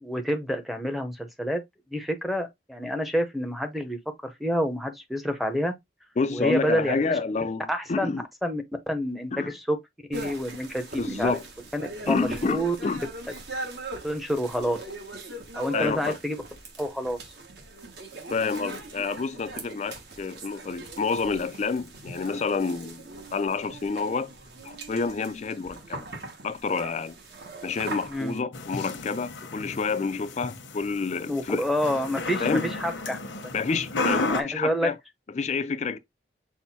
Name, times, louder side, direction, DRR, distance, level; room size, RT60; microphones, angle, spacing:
voice 1, 0.0-1.6 1.9-5.7 6.3-7.2 7.7-8.1 8.4-9.8 10.1-11.4 11.7-11.8 12.1-12.8 14.0-14.8 15.5-16.4 16.8-17.2 28.0-28.3 31.2-33.2 34.1-34.9, equal, ahead, 0.7 m, -28 dB
voice 2, 6.2-8.2 9.3-9.5 11.0-11.4 12.1-13.0 15.7-16.2 18.3-23.0 23.3-24.3 24.6-26.1 26.4-27.1 27.6-31.6 32.4-32.6 33.5-35.0 35.3-36.0, left 4 dB, 35° left, 0.4 m, -28 dB
sound 1, 10.1-28.4, right 2 dB, 60° right, 1.2 m, -40 dB
sound 2, 28.5-34.4, left 2 dB, 85° left, 0.9 m, -33 dB
6.0 x 2.0 x 4.1 m
head